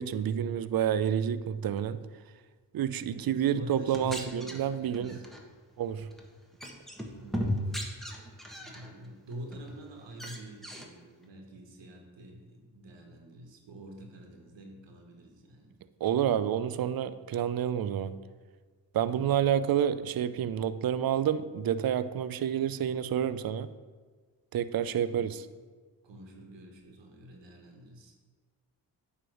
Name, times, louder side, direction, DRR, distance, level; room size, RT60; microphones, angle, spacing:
voice 1, 0.0-2.0 2.7-5.2 5.8-6.1 16.0-18.2 18.9-23.7 24.5-25.4, right 9 dB, 55° right, 14 dB, 0.5 m, -29 dB
voice 2, 3.1-5.2 7.2-7.8 8.5-15.7 19.1-19.4 25.0-25.3 26.0-28.1, right 1 dB, 80° right, 2 dB, 1.4 m, -47 dB
sound 1, 3.8-5.4 6.0-6.3 6.6-8.9 9.3-9.8 10.1-10.9, equal, ahead, 1.4 m, -37 dB
9.1 x 3.4 x 6.3 m, 1.4 s
supercardioid pair, 45°, 43 cm